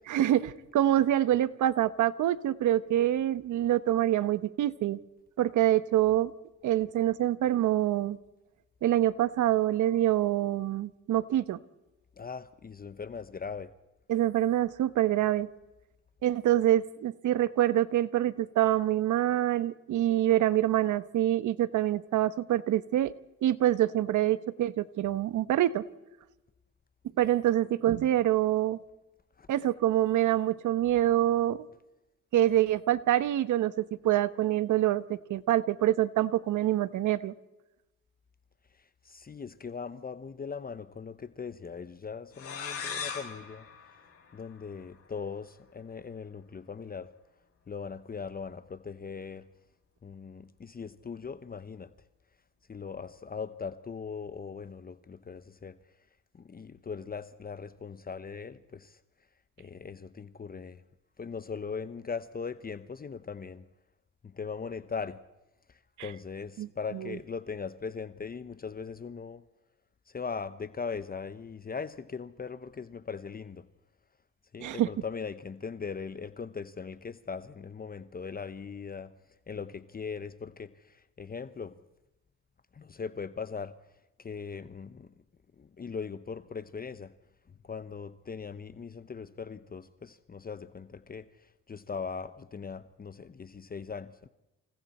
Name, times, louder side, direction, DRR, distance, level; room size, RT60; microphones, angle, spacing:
voice 1, 0.1-5.0 5.4-6.3 6.6-8.2 8.8-11.6 14.1-15.5 16.2-23.1 23.4-25.8 27.2-28.8 29.5-31.6 32.3-37.3 66.0-66.1 66.6-66.7 67.0-67.1 74.6-74.9, right 13 dB, 75° right, 1.1 m, -26 dB
voice 2, 12.2-13.7 29.4-29.5 39.0-43.7 44.3-47.1 47.7-49.5 50.0-51.9 52.7-55.8 56.3-59.0 59.6-60.8 61.2-63.7 64.2-65.2 65.7-69.4 70.1-73.7 74.5-79.1 79.5-81.8 82.7-83.8 84.2-85.1 85.6-87.1 87.6-91.3 91.7-94.3, left 5 dB, 30° left, 0.9 m, -40 dB
sound 1, 42.3-44.9, left 6 dB, 50° left, 6.3 m, -40 dB
28.5 x 28.0 x 4.3 m
cardioid pair, 90°, 30 cm